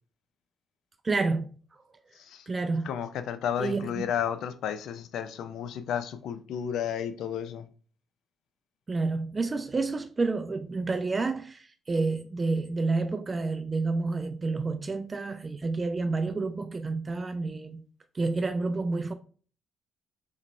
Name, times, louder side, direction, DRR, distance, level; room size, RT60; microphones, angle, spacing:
voice 1, 1.0-1.5 2.5-2.9 3.6-4.1 8.9-17.8 18.1-19.1, right 3 dB, 30° right, 0.3 m, -29 dB
voice 2, 2.8-7.7, left 8 dB, 80° left, 0.4 m, -32 dB
4.0 x 3.0 x 3.1 m
cardioid pair, 90°, 0 cm